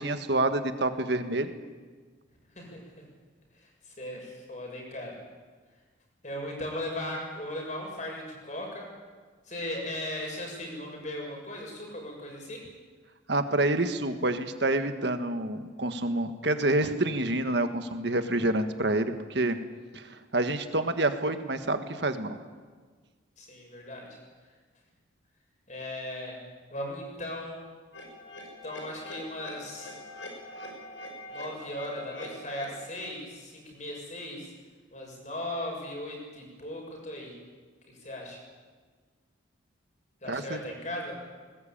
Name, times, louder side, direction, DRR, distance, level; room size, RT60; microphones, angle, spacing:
voice 1, 0.0-1.5 13.3-19.6 19.9-22.4 40.3-40.6, right 2 dB, 60° right, 8 dB, 1.6 m, -28 dB
voice 2, 3.6-5.2 6.2-8.9 9.5-12.6 23.4-24.1 25.7-26.4 26.7-27.7 28.6-30.0 31.3-34.5 34.9-37.4 38.0-38.4 40.2-41.2, left 1 dB, 40° left, 0 dB, 6.5 m, -37 dB
sound 1, 27.9-32.9, left 1 dB, 75° left, 6.1 m, -43 dB
20.5 x 19.5 x 8.7 m, 1.5 s
head